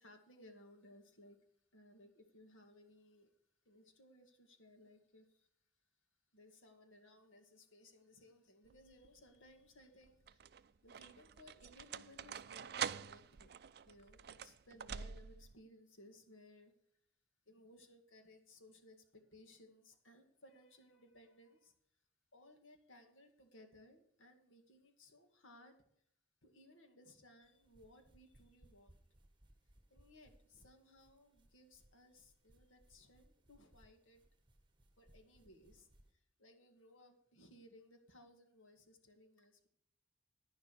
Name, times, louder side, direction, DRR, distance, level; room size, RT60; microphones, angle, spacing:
voice 1, 0.0-1.4 1.7-3.3 3.7-5.5 6.3-16.7 17.5-21.7 22.3-25.8 26.4-29.1 29.9-34.2 35.0-39.7, left 1 dB, 85° left, 5 dB, 2.2 m, -62 dB
sound 1, 8.7-9.2 10.0-15.5, right 7 dB, 55° right, 0.4 m, -46 dB
sound 2, 27.4-36.1, right 1 dB, 25° right, 1.4 m, -69 dB
11.0 x 10.5 x 4.8 m, 0.69 s
head